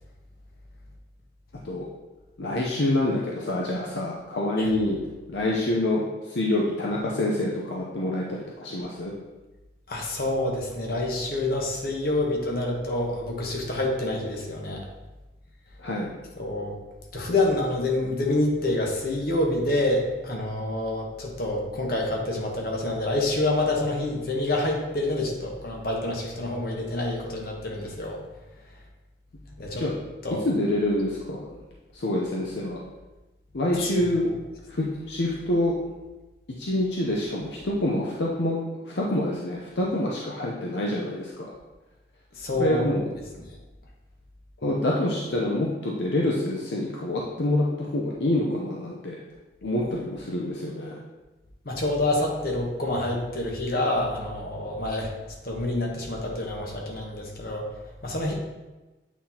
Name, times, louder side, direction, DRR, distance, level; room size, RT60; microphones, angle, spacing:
voice 1, 2.4-5.0 5.3-9.1 15.8-16.1 29.7-29.9 30.4-31.5 31.9-32.8 33.5-34.3 34.7-35.7 36.6-41.5 42.6-43.1 44.6-49.2 49.6-51.0, left 1 dB, 75° left, -3 dB, 0.7 m, -26 dB
voice 2, 9.9-14.9 16.4-16.8 17.1-28.2 29.6-29.9 30.2-30.4 33.8-34.3 42.3-42.9 43.4-43.5 51.6-55.1 55.4-57.7 58.0-58.3, left 2 dB, 55° left, -1 dB, 1.1 m, -27 dB
8.4 x 4.0 x 2.9 m, 1.1 s
head